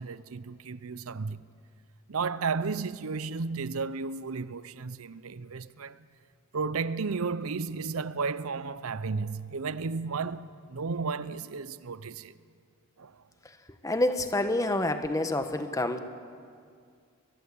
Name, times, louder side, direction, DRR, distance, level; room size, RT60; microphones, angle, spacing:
voice 1, 0.0-1.4 2.1-6.1 6.5-12.3 13.0-13.2, right 4 dB, 85° right, 0.7 m, -33 dB
voice 2, 13.8-16.0, left 1 dB, 15° left, 1.1 m, -27 dB
23.0 x 20.0 x 8.5 m
head